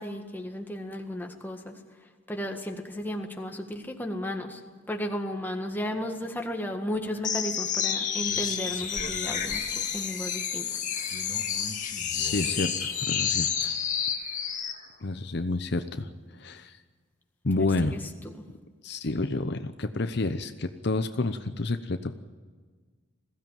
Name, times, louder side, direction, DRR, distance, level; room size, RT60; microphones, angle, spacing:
voice 1, 0.0-1.8 2.3-4.6 4.9-9.7 9.9-11.1 17.6-18.0 18.4-18.5, equal, 10° left, 3 dB, 1.8 m, -34 dB
sound 1, 7.2-14.8, left 7 dB, 40° left, 2.0 m, -30 dB
voice 2, 12.1-13.7 15.0-16.8 17.4-18.0 18.8-22.1, left 2 dB, 60° left, 9 dB, 0.8 m, -30 dB
21.0 x 16.0 x 9.1 m, 1.5 s
head